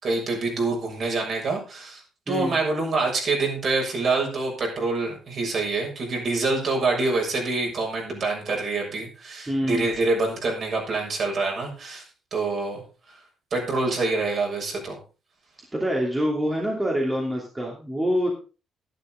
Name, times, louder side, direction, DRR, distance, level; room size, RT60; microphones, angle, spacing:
voice 1, 0.0-2.0 2.3-12.0 12.3-12.8 13.5-15.0, right 3 dB, 50° right, 0 dB, 6.7 m, -26 dB
voice 2, 2.3-2.6 9.5-9.9 15.7-18.3, equal, 15° right, -1 dB, 2.9 m, -25 dB
12.0 x 11.5 x 3.9 m, 0.33 s
cardioid pair, 130°, 0 cm